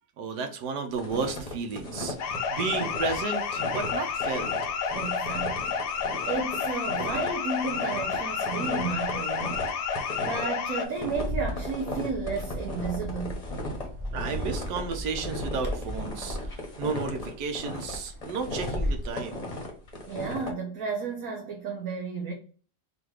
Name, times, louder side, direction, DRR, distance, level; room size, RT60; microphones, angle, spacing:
voice 1, 0.2-4.5 14.1-16.4 16.8-19.4, right 5 dB, 80° right, 1.3 m, -33 dB
sound 1, 0.9-20.5, left 1 dB, 30° left, 0.8 m, -37 dB
sound 2, 2.2-10.9, left 6 dB, 80° left, 1.2 m, -30 dB
voice 2, 4.9-5.8 6.3-9.7 10.3-13.4 20.1-22.3, right 4 dB, 60° right, 1.2 m, -33 dB
Bird, 11.1-19.1, equal, 40° right, 0.4 m, -35 dB
3.8 x 2.5 x 4.6 m
omnidirectional pair, 1.7 m